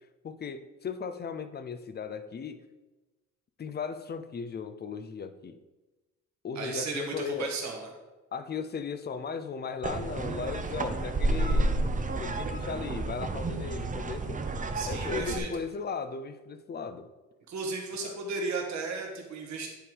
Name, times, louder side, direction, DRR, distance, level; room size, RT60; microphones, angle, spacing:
voice 1, 0.2-2.6 3.6-5.6 6.4-7.5 8.3-11.8 12.2-14.4 14.8-17.1 18.0-18.2, left 5 dB, 35° left, 11 dB, 0.6 m, -37 dB
voice 2, 6.6-7.9 14.7-15.5 17.5-19.7, right 4 dB, 65° right, 1 dB, 1.8 m, -35 dB
sound 1, 9.8-15.4, right 2 dB, 25° right, 0.7 m, -30 dB
10.0 x 3.6 x 4.7 m, 1.1 s
cardioid pair, 90°, 30 cm